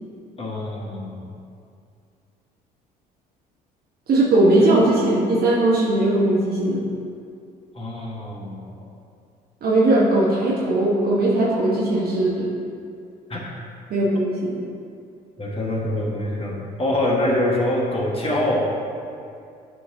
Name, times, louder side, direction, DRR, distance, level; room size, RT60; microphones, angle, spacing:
voice 1, 0.4-1.3 4.6-4.7 7.7-8.6 13.3-13.4 15.4-18.7, left 1 dB, 30° left, -3 dB, 1.4 m, -24 dB
voice 2, 4.1-6.8 9.6-12.5 13.9-14.6, right 2 dB, 50° right, -6 dB, 1.1 m, -19 dB
8.9 x 4.4 x 2.7 m, 2.4 s
hypercardioid pair, 60°, 20 cm